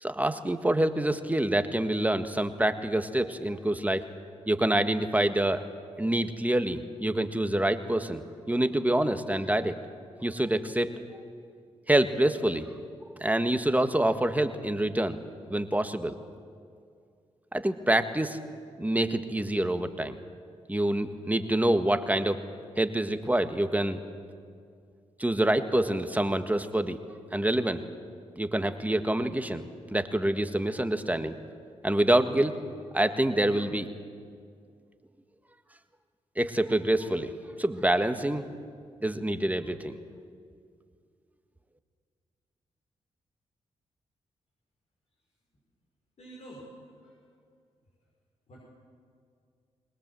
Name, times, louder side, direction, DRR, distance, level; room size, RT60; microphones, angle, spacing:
voice 1, 0.0-4.1 4.5-5.6 6.0-8.2 8.5-9.8 10.2-10.9 11.9-12.7 13.2-15.2 15.5-16.1 17.5-18.4 18.8-20.2 20.7-22.4 22.8-24.0 25.2-27.0 27.3-27.8 28.4-29.6 29.9-31.3 31.8-32.6 32.9-33.9 36.4-37.3 37.6-38.5 39.0-39.9, right 1 dB, 10° right, 8 dB, 1.6 m, -26 dB
voice 2, 46.2-46.7 47.0-47.2 48.5-48.6, right 1 dB, 60° left, -4 dB, 6.0 m, -47 dB
21.5 x 20.0 x 7.7 m, 2.3 s
supercardioid pair, 45°, 13 cm